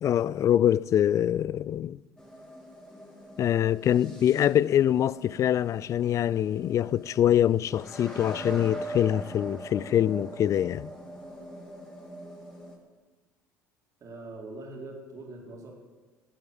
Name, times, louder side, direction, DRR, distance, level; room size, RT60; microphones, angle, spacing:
voice 1, 0.0-2.0 3.4-10.9, left 10 dB, 40° left, 0.3 m, -24 dB
sound 1, 2.2-12.8, right 1 dB, 10° left, 3.4 m, -42 dB
voice 2, 14.0-15.7, right 2 dB, 40° right, 3.0 m, -42 dB
11.5 x 7.9 x 7.8 m
figure-of-eight pair, 60°, 8 cm